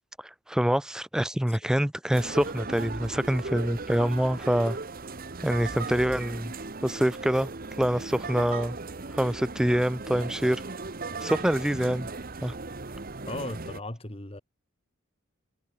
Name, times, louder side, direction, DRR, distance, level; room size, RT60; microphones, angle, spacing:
voice 1, 0.5-4.8 5.4-6.5 6.8-7.5 7.8-8.8 9.1-10.6 11.2-12.1 12.4-12.5, equal, 5° right, 0.4 m, -25 dB
sound 1, 2.1-13.8, right 3 dB, 45° right, 1.1 m, -37 dB
voice 2, 13.3-14.4, left 2 dB, 25° left, 2.0 m, -37 dB
head